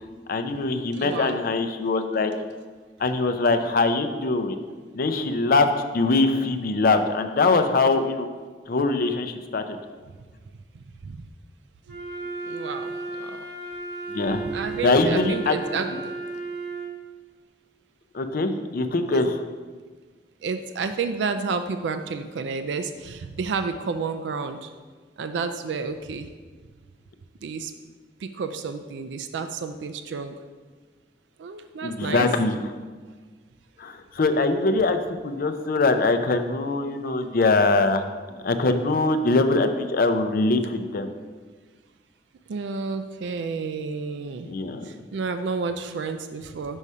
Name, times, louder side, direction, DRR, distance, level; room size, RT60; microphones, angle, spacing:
voice 1, 0.3-2.3 3.0-4.6 4.9-8.3 8.7-9.6 14.1-15.6 18.1-19.4 31.8-32.6 33.8-41.1 44.5-45.0, left 3 dB, 55° left, 8 dB, 0.5 m, -23 dB
voice 2, 0.9-1.4 10.7-11.3 12.4-13.5 14.4-16.1 19.1-19.3 20.4-24.7 25.2-26.3 27.4-27.7 28.2-30.4 31.4-32.3 42.5-44.5 44.8-46.8, right 4 dB, 80° right, 8 dB, 0.4 m, -31 dB
Wind instrument woodwind instrument, 11.9-17.0, right 3 dB, 65° right, 1.2 m, -34 dB
5.4 x 4.8 x 5.5 m, 1.4 s
head